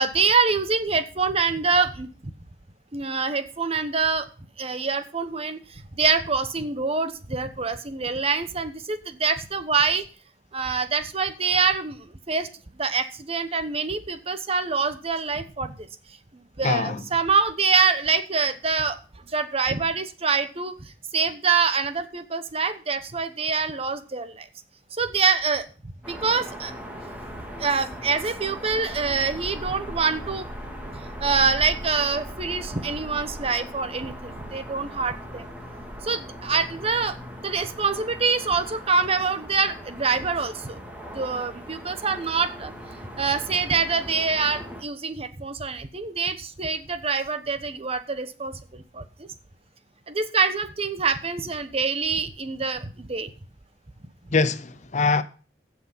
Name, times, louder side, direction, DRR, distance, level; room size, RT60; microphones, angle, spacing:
voice 1, 0.0-2.1 2.9-4.3 4.6-10.0 10.5-12.0 12.3-12.5 12.8-15.9 16.6-19.0 19.3-24.5 25.0-25.7 26.1-26.7 27.6-30.5 30.9-35.4 36.0-37.2 37.4-40.8 41.1-42.7 43.2-49.0 50.1-53.3, right 5 dB, 35° right, 1.0 m, -25 dB
voice 2, 16.6-17.0 54.3-55.2, left 4 dB, 45° left, 0.7 m, -23 dB
sound 1, 26.0-44.8, equal, 10° right, 2.6 m, -39 dB
15.5 x 6.2 x 5.6 m
head